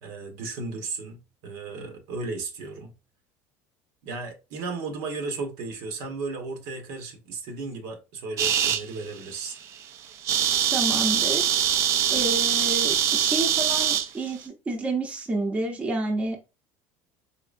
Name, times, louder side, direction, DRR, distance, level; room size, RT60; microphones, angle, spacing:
voice 1, 0.0-2.9 4.0-9.6, right 3 dB, 70° right, 1.2 m, -35 dB
sound 1, 8.4-8.8 9.4-9.6 9.8-9.9 10.1-14.1, right 10 dB, 50° right, 0.5 m, -23 dB
voice 2, 10.7-11.5 12.1-16.4, right 2 dB, 20° right, 0.8 m, -29 dB
3.8 x 3.0 x 2.5 m
cardioid pair, 130°, 7 cm